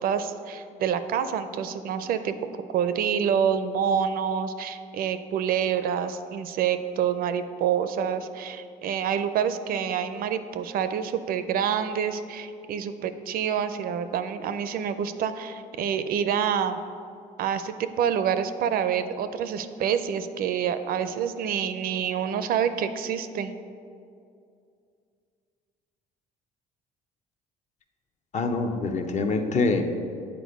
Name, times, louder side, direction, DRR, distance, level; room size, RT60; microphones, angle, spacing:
voice 1, 0.0-2.3 2.7-16.8 17.4-23.5, right 8 dB, 60° right, 11 dB, 0.4 m, -27 dB
voice 2, 28.3-29.8, left 3 dB, 45° left, 6 dB, 0.7 m, -25 dB
8.3 x 4.3 x 5.2 m, 2.4 s
cardioid pair, 110°, 17 cm